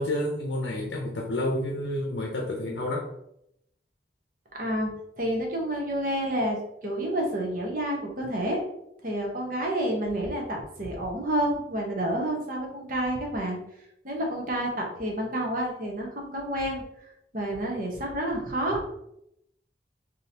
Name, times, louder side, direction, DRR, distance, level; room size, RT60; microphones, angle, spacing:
voice 1, 0.0-3.1, left 1 dB, 90° left, 0 dB, 0.7 m, -29 dB
voice 2, 4.5-4.9 5.2-8.6 9.0-13.6 14.0-16.8 17.3-18.8, right 1 dB, 50° right, 0 dB, 0.9 m, -29 dB
3.7 x 2.8 x 2.8 m, 0.77 s
head